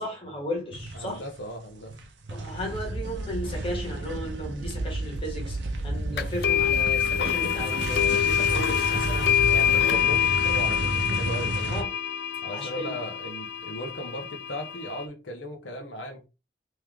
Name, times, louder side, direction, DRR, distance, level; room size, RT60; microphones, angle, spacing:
voice 1, 0.0-1.2 2.3-5.6 5.8-9.4 9.7-10.0 11.7-11.9 12.5-13.0, equal, 30° left, 1.6 m, -35 dB
sound 1, 0.7-1.5 1.8-11.8, right 2 dB, 85° right, 0.7 m, -32 dB
voice 2, 0.9-1.9 9.4-11.8 12.4-16.3, equal, 85° left, 1.1 m, -37 dB
sound 2, 6.2-15.0, left 10 dB, 60° left, 0.4 m, -26 dB
3.2 x 3.2 x 3.6 m
head